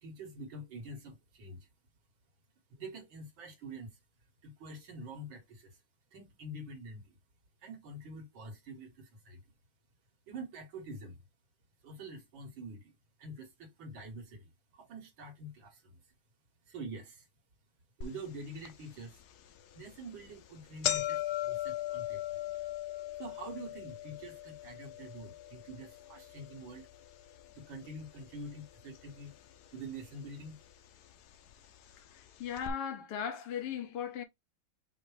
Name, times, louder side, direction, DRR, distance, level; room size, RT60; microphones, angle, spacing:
voice 1, 0.0-1.7 2.7-3.9 4.4-5.8 6.1-7.1 7.6-9.4 10.3-11.2 11.8-12.9 13.2-16.0 16.7-17.3 18.0-19.2 19.8-22.4 23.2-26.9 27.5-29.3 29.7-30.6, right 2 dB, 65° right, 2.0 m, -46 dB
sound 1, 18.0-18.1 18.6-18.7 19.6-19.8 20.1-20.2 20.5-28.7 28.9-29.7 30.5-30.6 31.5-31.6 31.9-32.0 32.6-32.7, left 12 dB, 80° left, 0.8 m, -39 dB
voice 2, 32.1-34.2, left 8 dB, 60° left, 1.4 m, -37 dB
5.2 x 2.1 x 4.7 m
omnidirectional pair, 2.3 m